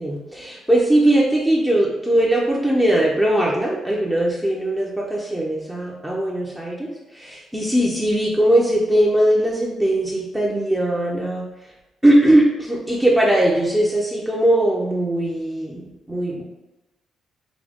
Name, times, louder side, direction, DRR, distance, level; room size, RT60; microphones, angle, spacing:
voice 1, 0.0-11.5 12.0-16.4, right 1 dB, 5° right, -4 dB, 0.5 m, -20 dB
4.8 x 2.3 x 3.4 m, 1.0 s
cardioid pair, 145°, 0 cm